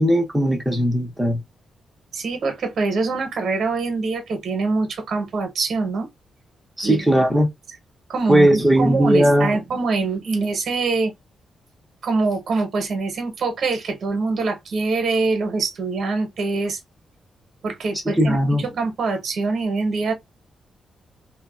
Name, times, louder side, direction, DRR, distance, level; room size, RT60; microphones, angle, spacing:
voice 1, 0.0-1.4 6.8-7.5 8.3-9.6 18.2-18.7, equal, 5° right, 0.8 m, -18 dB
voice 2, 2.1-6.1 6.8-7.1 8.1-11.1 12.0-16.8 17.6-20.1, right 3 dB, 55° right, 0.9 m, -24 dB
3.3 x 2.1 x 2.3 m
wide cardioid pair, 165°, 0 cm